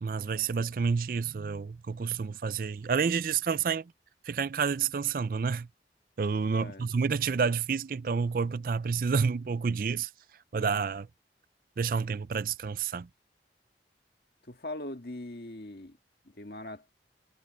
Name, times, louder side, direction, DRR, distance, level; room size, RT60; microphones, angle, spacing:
voice 1, 0.0-3.9 4.2-5.7 6.2-10.1 10.5-11.1 11.8-13.1, right 5 dB, 50° right, 0.4 m, -29 dB
voice 2, 6.5-6.9 14.4-16.0 16.2-16.9, left 1 dB, 60° left, 1.7 m, -41 dB
head